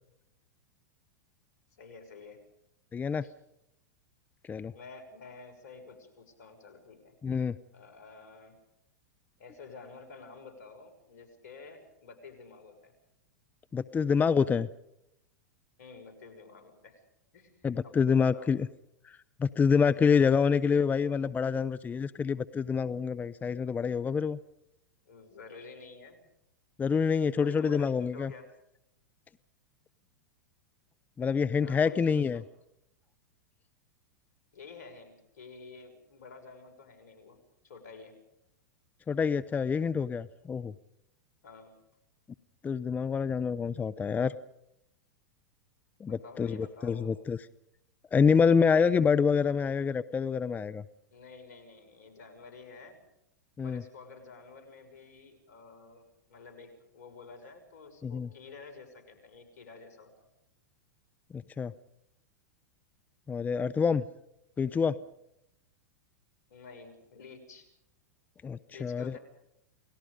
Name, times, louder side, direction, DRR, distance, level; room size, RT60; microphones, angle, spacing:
voice 1, 1.8-2.4 3.2-3.3 4.7-7.1 7.7-8.6 9.4-12.9 15.8-17.0 17.3-18.5 25.1-26.2 27.3-28.5 31.6-32.4 34.5-37.4 37.6-38.2 41.4-41.7 46.1-47.2 51.1-53.0 53.6-60.3 66.5-67.7 68.7-69.2, left 4 dB, 70° left, 6 dB, 6.5 m, -50 dB
voice 2, 2.9-3.2 4.5-4.7 7.2-7.5 13.7-14.7 17.6-18.7 19.4-24.4 26.8-28.3 31.2-32.4 39.1-40.7 42.6-44.3 46.0-47.4 48.1-50.8 53.6-53.8 58.0-58.3 61.3-61.7 63.3-64.0 64.6-64.9 68.4-69.2, left 6 dB, 15° left, 15 dB, 0.7 m, -27 dB
29.5 x 19.0 x 5.2 m, 0.83 s
hypercardioid pair, 110°, 9 cm